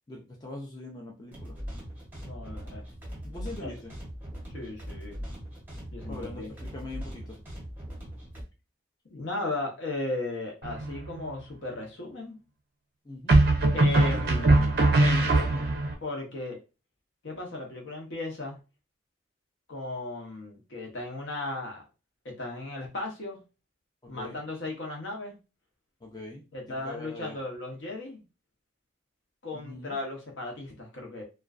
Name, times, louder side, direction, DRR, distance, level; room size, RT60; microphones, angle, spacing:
voice 1, 0.1-1.6 3.2-3.9 6.1-7.4 13.0-13.4 14.1-14.4 14.9-15.8 24.0-24.4 26.0-27.4 29.5-30.0, left 2 dB, 20° left, -1 dB, 0.4 m, -42 dB
sound 1, 1.3-8.4, equal, 10° right, 0.7 m, -40 dB
voice 2, 2.2-2.8 3.6-3.7 4.5-5.2 5.9-6.5 9.1-12.4 13.7-15.2 16.0-16.6 17.2-18.6 19.7-21.8 22.2-23.4 24.1-25.4 26.5-28.2 29.4-31.2, left 2 dB, 65° left, 1 dB, 0.8 m, -36 dB
sound 2, 10.6-11.2 13.3-15.9, right 2 dB, 50° right, 0.4 m, -21 dB
2.4 x 2.2 x 2.3 m, 0.30 s
head